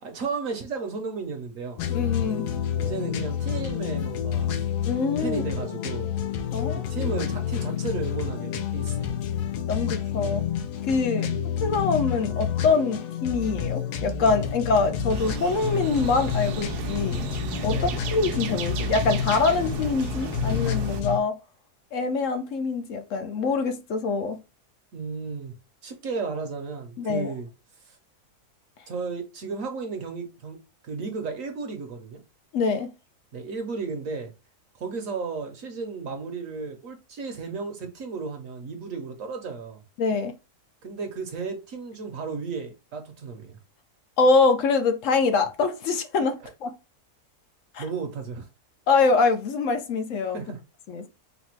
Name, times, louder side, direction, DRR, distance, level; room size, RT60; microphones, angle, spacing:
voice 1, 0.0-1.8 2.8-4.6 5.2-6.1 6.7-9.2 11.1-11.5 17.7-18.0 24.9-25.5 25.8-27.5 27.8-28.0 28.9-30.6 30.8-32.2 33.3-34.3 34.7-39.8 40.8-43.6 46.4-46.5 47.8-48.5 50.3-50.6, right 4 dB, 60° right, 1.1 m, -34 dB
sound 1, 1.8-21.2, left 8 dB, 90° left, 1.2 m, -29 dB
voice 2, 1.9-2.5 4.9-5.4 6.5-6.9 9.7-10.4 10.8-11.3 11.6-17.3 17.6-17.8 18.1-21.4 21.9-24.4 27.0-27.3 32.5-32.9 40.0-40.3 44.2-46.7 47.7-47.8 48.9-50.4 50.9-51.1, left 4 dB, 65° left, 0.9 m, -24 dB
sound 2, 15.1-21.0, right 7 dB, 85° right, 1.2 m, -34 dB
4.1 x 2.2 x 4.5 m
omnidirectional pair, 1.7 m